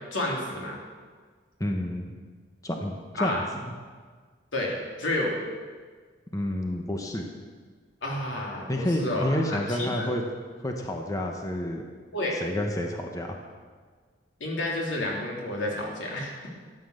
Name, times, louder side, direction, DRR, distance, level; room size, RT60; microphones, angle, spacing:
voice 1, 0.1-0.8 3.2-3.4 4.5-5.3 8.0-10.1 12.1-12.4 14.4-16.5, left 1 dB, 85° left, -2 dB, 3.3 m, -30 dB
voice 2, 1.6-2.0 2.6-3.7 6.3-7.3 8.7-10.2 10.6-11.8 12.3-13.4, left 1 dB, 20° left, 2 dB, 1.0 m, -29 dB
13.0 x 9.5 x 6.6 m, 1.5 s
head